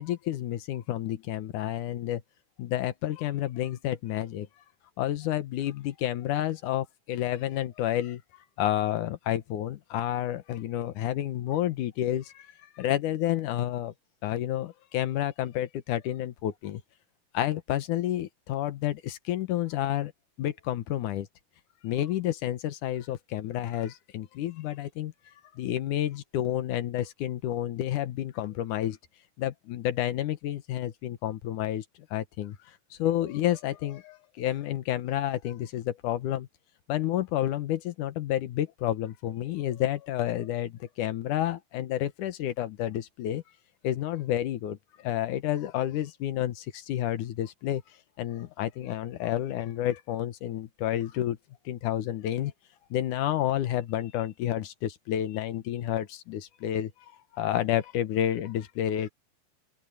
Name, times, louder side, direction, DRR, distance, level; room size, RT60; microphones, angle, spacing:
voice 1, 0.0-2.2 2.6-4.5 5.0-8.2 8.6-12.5 12.8-13.9 14.2-16.8 17.3-20.1 20.4-21.3 21.8-25.1 25.5-29.0 29.4-31.8 32.1-32.6 33.0-36.5 36.9-43.4 43.8-47.8 48.2-51.4 51.7-52.5 52.9-56.9 57.3-59.1, left 12 dB, 85° left, 2.6 m, -30 dB
open air
omnidirectional pair, 3.5 m